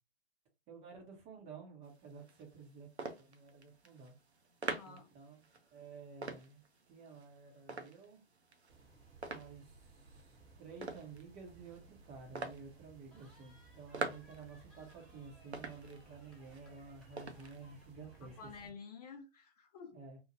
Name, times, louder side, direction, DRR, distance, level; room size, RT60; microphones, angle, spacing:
voice 1, 0.7-4.1 4.8-5.4 5.7-8.2 9.3-10.2 10.6-18.3 19.9-20.2, right 5 dB, 20° right, 0.6 m, -52 dB
sound 1, 1.8-17.9, right 3 dB, 85° right, 0.6 m, -48 dB
voice 2, 4.6-5.1 18.2-20.0, left 5 dB, 40° left, 0.5 m, -51 dB
sound 2, 8.7-18.7, right 3 dB, 65° right, 0.9 m, -61 dB
Cheering, 13.1-18.6, equal, ahead, 1.0 m, -66 dB
3.0 x 2.0 x 2.6 m
figure-of-eight pair, 110°, 32 cm